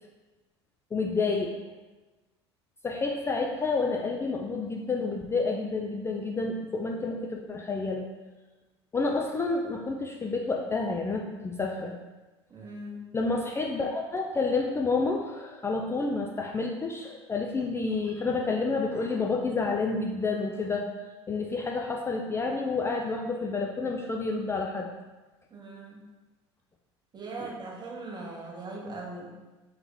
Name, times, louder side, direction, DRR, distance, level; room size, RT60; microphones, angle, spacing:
voice 1, 0.9-1.5 2.8-8.1 8.9-11.9 13.1-20.9 21.3-24.9, left 3 dB, 20° left, 0 dB, 0.4 m, -29 dB
voice 2, 12.5-13.1 25.5-26.0 27.1-29.3, right 2 dB, 30° right, -1 dB, 1.0 m, -40 dB
3.5 x 2.9 x 3.6 m, 1.2 s
hypercardioid pair, 70°, 14 cm